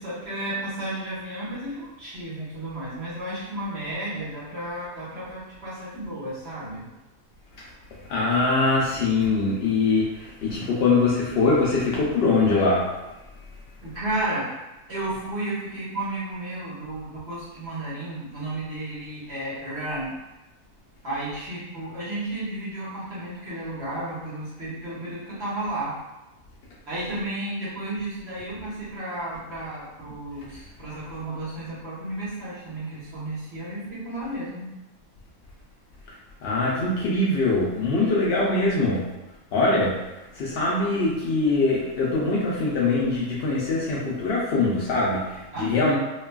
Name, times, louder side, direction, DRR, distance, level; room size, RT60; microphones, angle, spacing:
voice 1, 0.0-6.9 13.8-14.5 14.9-20.2 21.0-25.9 26.9-34.7 45.5-46.0, right 1 dB, 50° right, -10 dB, 1.3 m, -32 dB
voice 2, 8.1-12.8 36.4-39.0 39.5-39.9 40.3-46.0, left 3 dB, 70° left, -6 dB, 0.6 m, -22 dB
3.1 x 2.2 x 2.2 m, 1.0 s
omnidirectional pair, 1.6 m